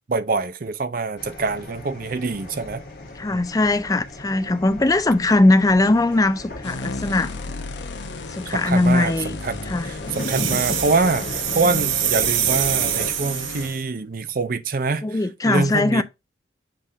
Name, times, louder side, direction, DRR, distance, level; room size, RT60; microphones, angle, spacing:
voice 1, 0.1-2.8 3.3-3.4 8.5-16.0, right 3 dB, 45° right, 0.5 m, -25 dB
sound 1, 1.2-13.1, left 2 dB, 50° left, 1.6 m, -36 dB
voice 2, 3.2-7.3 8.3-9.4 9.7-9.9 15.0-16.0, left 2 dB, 20° left, 0.4 m, -20 dB
sound 2, 6.6-13.8, left 3 dB, 70° left, 0.8 m, -34 dB
sound 3, 10.1-13.8, right 11 dB, 90° right, 0.7 m, -25 dB
7.6 x 3.6 x 4.1 m
head